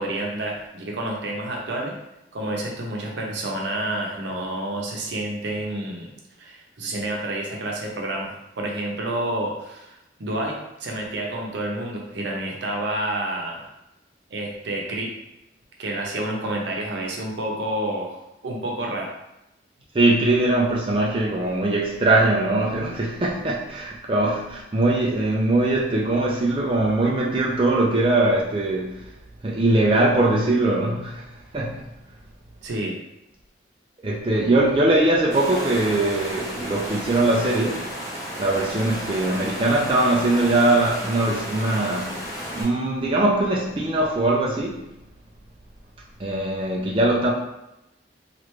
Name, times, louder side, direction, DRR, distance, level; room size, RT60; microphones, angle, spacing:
voice 1, 0.0-2.0 2.3-6.1 6.4-13.7 14.3-15.1 15.8-19.1 32.6-33.0, right 1 dB, 80° right, -1 dB, 0.7 m, -29 dB
voice 2, 19.9-29.1 29.4-31.3 31.5-31.9 34.0-37.9 38.4-42.2 42.5-44.9 46.2-47.3, right 2 dB, 30° right, -3 dB, 0.3 m, -21 dB
Water, 35.3-42.6, equal, 20° left, 1.2 m, -33 dB
3.2 x 2.4 x 3.0 m, 0.89 s
head